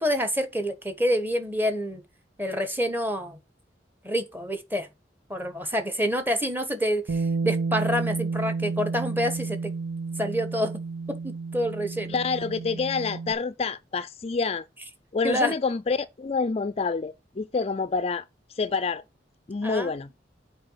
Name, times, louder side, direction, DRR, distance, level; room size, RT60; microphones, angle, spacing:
voice 1, 0.0-2.0 2.4-3.4 4.0-4.9 5.3-9.7 10.2-10.8 11.1-12.2 15.2-15.5 19.6-19.9, equal, 10° right, 1.3 m, -27 dB
Bass guitar, 7.1-13.3, right 4 dB, 85° right, 0.8 m, -31 dB
voice 2, 12.1-14.6 15.1-18.2 18.5-19.0 19.5-20.1, left 4 dB, 35° left, 0.4 m, -27 dB
7.7 x 4.9 x 5.6 m
head